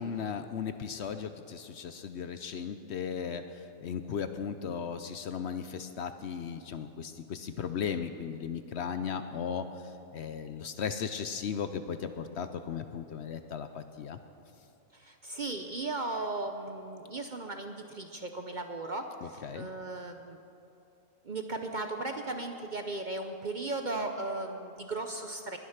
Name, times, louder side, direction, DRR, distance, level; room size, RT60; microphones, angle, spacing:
voice 1, 0.0-14.2 19.2-19.7, left 7 dB, 60° left, 9 dB, 0.8 m, -36 dB
voice 2, 14.9-20.4 21.2-25.6, right 2 dB, 45° right, 5 dB, 0.7 m, -36 dB
20.5 x 9.7 x 5.8 m, 2.8 s
omnidirectional pair, 1.4 m